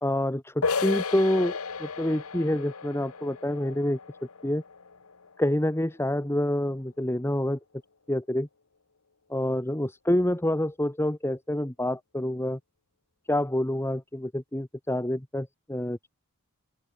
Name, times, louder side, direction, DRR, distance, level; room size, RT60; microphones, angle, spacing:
voice 1, 0.0-4.0 4.4-4.6 5.4-7.6 8.1-8.5 9.3-12.6 13.3-16.0, left 1 dB, 10° left, 1.3 m, -27 dB
sound 1, 0.6-6.1, left 4 dB, 80° left, 1.3 m, -34 dB
open air
head